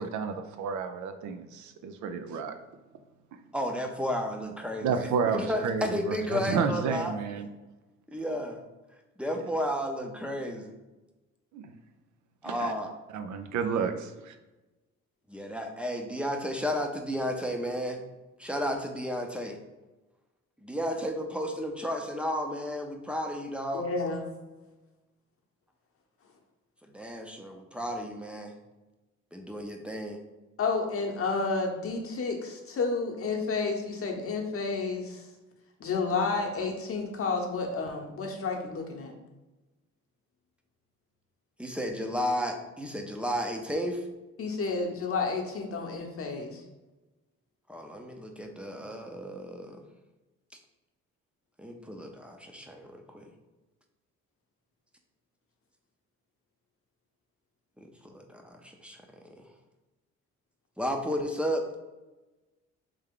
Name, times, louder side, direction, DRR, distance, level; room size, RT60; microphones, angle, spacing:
voice 1, 0.0-2.5 4.8-7.5 11.5-11.7 12.4-12.7 13.1-14.3, right 6 dB, 75° right, 7 dB, 0.5 m, -31 dB
voice 2, 3.5-7.1 8.1-8.6 9.2-10.7 12.4-12.9 15.3-18.0 18.4-19.6 20.6-23.9 26.9-28.5 29.3-30.2 41.6-44.0 47.7-49.8 51.6-53.3 57.8-59.0 59.4-59.5 60.8-61.8, equal, 5° right, 3 dB, 0.6 m, -33 dB
voice 3, 23.7-24.2 30.6-35.3 35.8-39.1 44.4-46.6, left 4 dB, 50° left, 1 dB, 0.9 m, -31 dB
3.5 x 3.3 x 3.6 m, 1.1 s
cardioid pair, 90°, 30 cm